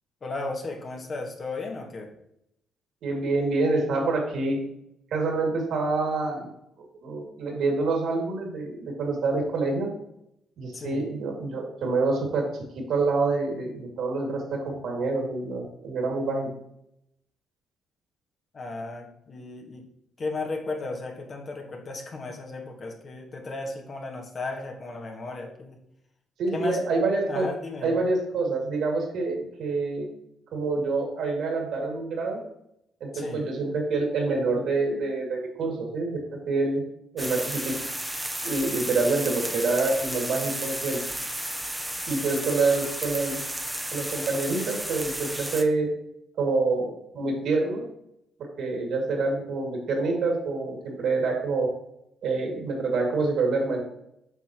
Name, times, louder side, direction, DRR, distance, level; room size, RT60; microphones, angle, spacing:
voice 1, 0.2-2.1 10.7-11.1 18.5-19.9 20.2-25.8 26.5-26.8 27.3-28.0 33.1-33.5, left 3 dB, 45° left, 2 dB, 1.5 m, -35 dB
voice 2, 3.0-4.6 5.1-6.5 6.8-9.9 10.6-12.4 12.8-16.5 26.4-27.5 27.8-30.1 30.5-32.4 33.0-36.2 36.5-36.8 37.1-37.7 38.4-41.0 42.1-43.4 43.9-45.9 46.4-47.8 48.6-51.7 52.2-53.8, right 3 dB, 75° right, 0 dB, 2.5 m, -26 dB
sound 1, 37.2-45.6, right 1 dB, 5° right, 0.9 m, -33 dB
8.0 x 5.8 x 3.1 m, 0.79 s
cardioid pair, 90°, 0 cm